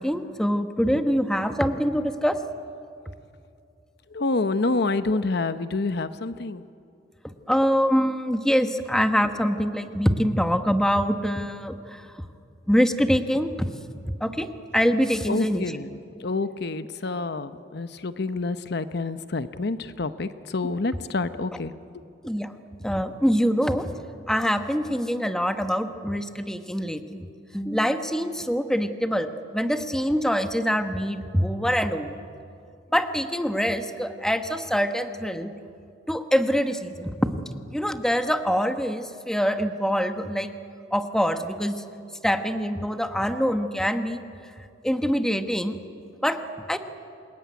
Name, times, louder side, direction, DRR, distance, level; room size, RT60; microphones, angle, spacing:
voice 1, 0.0-2.4 7.5-12.0 12.7-13.7 14.0-15.8 21.5-21.6 22.2-22.5 22.8-23.9 24.3-27.3 27.5-32.1 32.9-35.5 36.1-37.4 37.7-40.5 40.9-41.8 42.2-44.2 44.8-45.8 46.2-46.8, equal, 5° left, 7 dB, 1.2 m, -24 dB
voice 2, 4.1-6.6 15.3-21.7, left 3 dB, 65° left, 11 dB, 0.8 m, -28 dB
27.5 x 21.0 x 9.5 m, 2.5 s
head